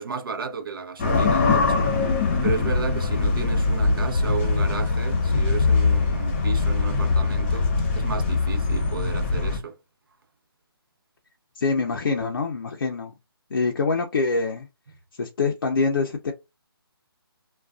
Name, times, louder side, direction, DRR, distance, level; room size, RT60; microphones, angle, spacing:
voice 1, 0.0-1.9 2.4-9.8, right 6 dB, 60° right, 0.7 m, -33 dB
sound 1, 1.0-9.6, left 4 dB, 25° left, 0.7 m, -22 dB
voice 2, 11.6-13.1 13.5-14.7 15.2-16.3, left 4 dB, 60° left, 0.5 m, -25 dB
2.4 x 2.2 x 2.3 m
figure-of-eight pair, 155°, 13 cm